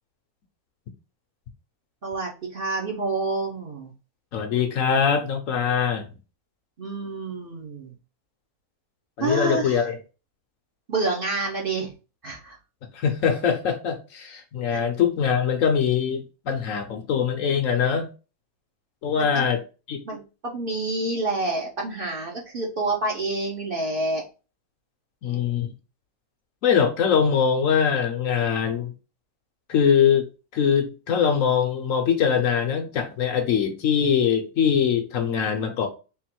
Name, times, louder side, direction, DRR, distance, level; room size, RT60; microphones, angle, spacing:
voice 1, 2.0-3.9 6.8-7.9 9.2-9.8 10.9-11.9 12.2-12.6 14.7-14.8 19.2-19.4 20.0-24.2 25.3-25.4, right 2 dB, 45° right, 0.9 m, -28 dB
voice 2, 4.3-6.1 9.2-10.0 12.9-18.1 19.0-19.6 19.9-20.0 25.2-25.7 26.6-28.9 29.7-35.9, left 7 dB, 65° left, 1.1 m, -22 dB
3.7 x 2.5 x 4.3 m
omnidirectional pair, 1.6 m